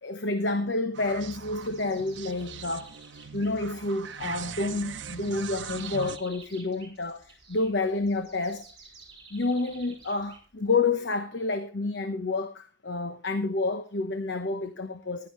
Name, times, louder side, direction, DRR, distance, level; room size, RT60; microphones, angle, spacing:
voice 1, 0.0-2.9 3.3-8.7 9.3-15.3, left 3 dB, 65° left, 1.0 m, -29 dB
sound 1, 0.9-6.2, right 7 dB, 75° right, 0.8 m, -41 dB
sound 2, 1.1-10.9, right 4 dB, 25° right, 5.5 m, -52 dB
15.5 x 11.5 x 3.2 m
head